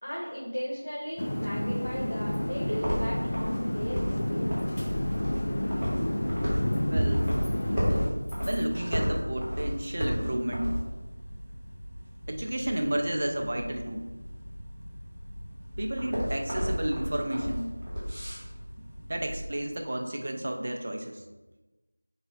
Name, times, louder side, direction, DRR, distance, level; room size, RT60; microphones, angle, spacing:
voice 1, 0.0-4.6, equal, 70° left, -5 dB, 1.7 m, -35 dB
sound 1, 1.1-3.9 4.2-8.0 8.2-9.0 9.5-9.9, left 1 dB, 15° left, 1.1 m, -45 dB
sound 2, 1.2-8.1, left 1 dB, 35° left, 0.5 m, -30 dB
sound 3, 1.8-19.4, equal, ahead, 1.5 m, -34 dB
voice 2, 6.9-7.3 8.4-10.8 12.3-14.1 15.8-17.7 19.0-21.2, right 1 dB, 35° right, 4 dB, 0.6 m, -31 dB
4.8 x 3.9 x 5.4 m, 1.1 s
figure-of-eight pair, 175°, 0 cm